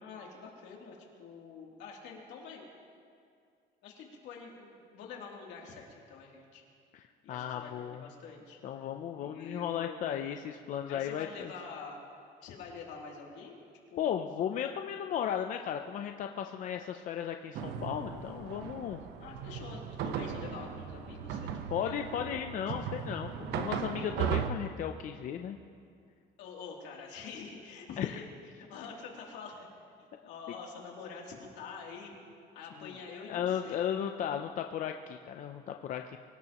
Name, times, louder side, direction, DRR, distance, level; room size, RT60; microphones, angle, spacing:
voice 1, 0.0-2.7 3.8-6.6 7.2-8.6 9.2-10.0 10.9-12.0 12.4-13.6 13.9-14.3 19.2-21.5 21.9-22.6 26.4-28.2 28.6-29.7 30.2-32.1 32.5-33.8, left 5 dB, 80° left, -1 dB, 3.0 m, -46 dB
voice 2, 6.9-8.0 8.6-11.5 14.0-19.0 21.7-25.6 28.0-28.2 32.8-32.9 33.3-36.2, left 9 dB, 45° left, 5 dB, 0.6 m, -35 dB
sound 1, 17.5-24.5, right 8 dB, 70° right, 0.9 m, -37 dB
24.0 x 17.5 x 3.0 m, 2.3 s
cardioid pair, 165°, 18 cm